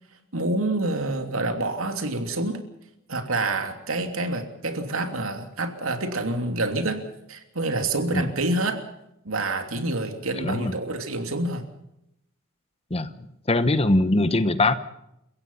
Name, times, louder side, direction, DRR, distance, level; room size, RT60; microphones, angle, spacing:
voice 1, 0.3-2.6 3.1-7.0 7.3-8.8 9.2-11.6, right 2 dB, 70° right, 6 dB, 3.0 m, -27 dB
voice 2, 10.4-10.7 12.9-13.1 13.5-14.7, left 2 dB, 30° left, 12 dB, 1.1 m, -21 dB
29.5 x 16.0 x 5.6 m, 0.82 s
head